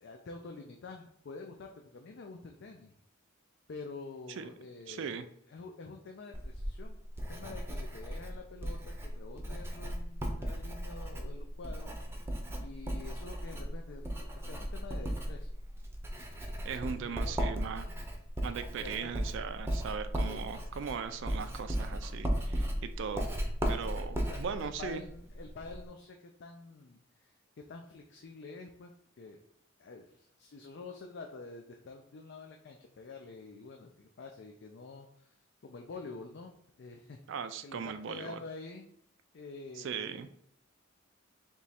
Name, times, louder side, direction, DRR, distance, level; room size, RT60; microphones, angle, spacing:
voice 1, 0.0-2.9 3.7-15.5 16.9-17.3 18.7-19.2 20.2-20.5 24.2-27.4 27.7-28.9 29.2-29.4 29.8-35.3 35.6-36.5 36.8-37.2 37.6-38.8 39.3-40.2, left 3 dB, 55° left, 3 dB, 0.4 m, -47 dB
voice 2, 4.9-5.2 16.6-17.9 18.4-23.3 23.7-25.0 37.3-38.4 39.8-40.3, right 6 dB, 60° right, 10 dB, 0.3 m, -39 dB
Writing, 6.3-25.9, equal, 10° right, 0.6 m, -36 dB
3.6 x 3.0 x 4.2 m, 0.69 s
head